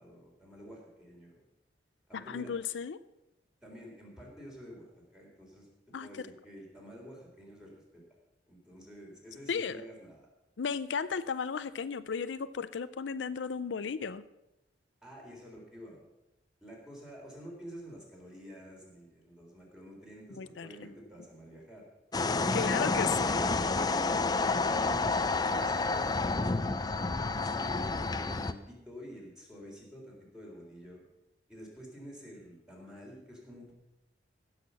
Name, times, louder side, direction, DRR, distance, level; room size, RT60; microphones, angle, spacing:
voice 1, 0.0-1.4 2.1-2.5 3.6-5.7 6.0-8.0 8.5-10.3 15.0-16.0 16.6-21.8 22.7-23.3 23.9-26.8 27.4-31.1 31.5-33.7, equal, 5° right, -2 dB, 3.5 m, -49 dB
voice 2, 2.1-3.0 5.9-6.1 9.5-9.8 10.6-14.2 20.3-20.7 22.5-23.4, left 6 dB, 80° left, 14 dB, 0.5 m, -34 dB
sound 1, 22.1-28.5, left 3 dB, 20° left, 0.5 m, -29 dB
16.0 x 6.5 x 6.9 m, 0.94 s
head